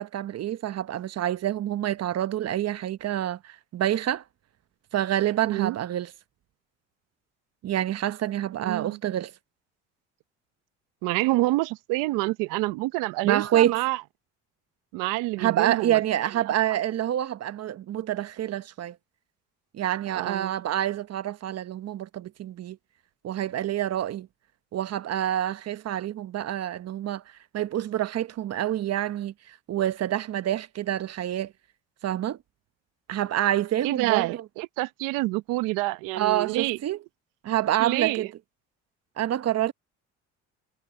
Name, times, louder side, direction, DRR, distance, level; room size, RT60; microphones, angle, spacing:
voice 1, 0.0-4.2 4.9-6.1 7.6-9.3 13.2-13.8 15.4-19.0 19.7-22.8 23.2-24.3 24.7-27.2 27.5-31.5 32.0-32.4 33.1-34.3 36.1-37.0 37.4-38.3 39.2-39.7, right 12 dB, 50° right, 1.0 m, -27 dB
voice 2, 5.4-5.8 8.6-9.0 11.0-14.0 14.9-16.0 20.1-20.6 33.8-36.8 37.8-38.3, right 20 dB, 80° right, 1.0 m, -27 dB
supercardioid pair, 80°, 32 cm